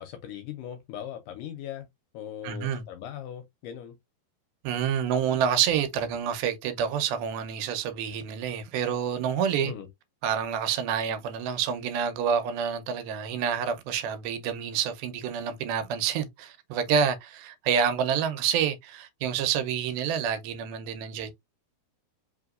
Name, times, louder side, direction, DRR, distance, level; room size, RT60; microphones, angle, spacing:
voice 1, 0.0-1.9 2.1-4.0 9.6-9.9, left 10 dB, 80° left, 2.0 m, -39 dB
voice 2, 2.4-2.9 4.6-9.7 10.2-21.3, right 8 dB, 85° right, 2.6 m, -28 dB
5.4 x 2.9 x 2.4 m
omnidirectional pair, 4.2 m